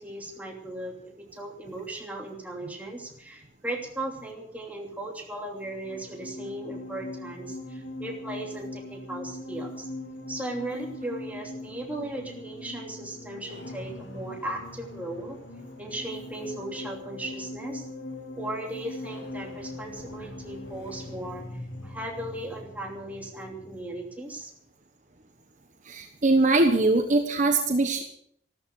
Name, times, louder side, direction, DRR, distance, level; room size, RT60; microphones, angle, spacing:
voice 1, 0.0-9.9 10.3-15.4 15.8-17.9 18.4-24.5, right 1 dB, 10° right, 0 dB, 2.8 m, -37 dB
sound 1, 5.6-24.1, left 2 dB, 70° left, 2.1 m, -41 dB
voice 2, 25.9-28.0, right 2 dB, 45° right, 5 dB, 1.3 m, -22 dB
14.0 x 13.5 x 6.5 m, 0.67 s
head